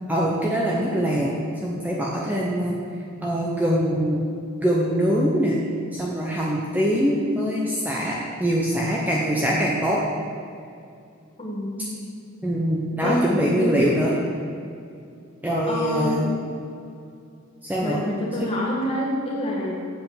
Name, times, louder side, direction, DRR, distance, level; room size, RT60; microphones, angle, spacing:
voice 1, 0.1-2.8 3.2-4.2 4.6-5.6 5.9-10.0 12.4-14.1 15.4-16.2 17.6-18.0, equal, 10° right, -4 dB, 0.8 m, -23 dB
voice 2, 11.4-12.0 13.0-13.8 15.7-16.4 17.8-19.7, left 1 dB, 25° left, -4 dB, 1.6 m, -27 dB
7.8 x 5.0 x 7.3 m, 2.4 s
head